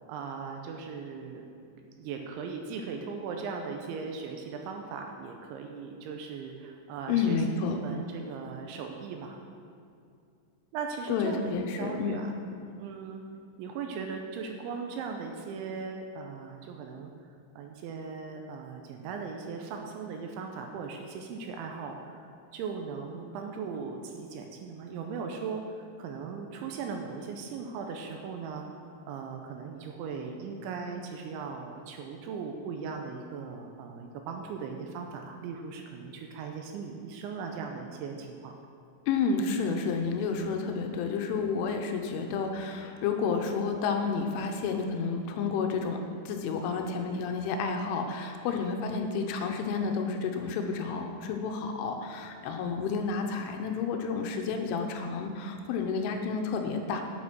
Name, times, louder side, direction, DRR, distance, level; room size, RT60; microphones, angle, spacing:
voice 1, 0.1-1.4 1.9-7.4 7.7-9.4 10.7-12.3 12.6-13.2 13.6-17.1 17.6-28.7 29.1-38.5, right 5 dB, 85° right, 3 dB, 2.9 m, -38 dB
voice 2, 7.1-7.8 11.1-12.2 39.1-46.0 46.3-57.0, left 5 dB, 80° left, 4 dB, 3.2 m, -30 dB
8.7 x 8.7 x 6.1 m, 2.4 s
omnidirectional pair, 5.7 m